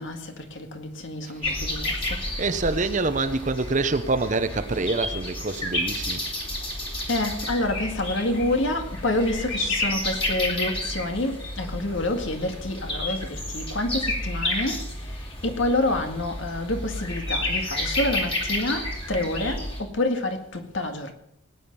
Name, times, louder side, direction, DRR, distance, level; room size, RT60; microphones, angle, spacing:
voice 1, 0.0-2.9 7.1-21.1, left 1 dB, 70° left, 2.0 m, -28 dB
sound 1, 1.4-19.8, left 1 dB, 30° left, 2.6 m, -31 dB
voice 2, 2.4-6.2, right 3 dB, 40° right, 0.9 m, -26 dB
19.0 x 9.4 x 5.4 m
head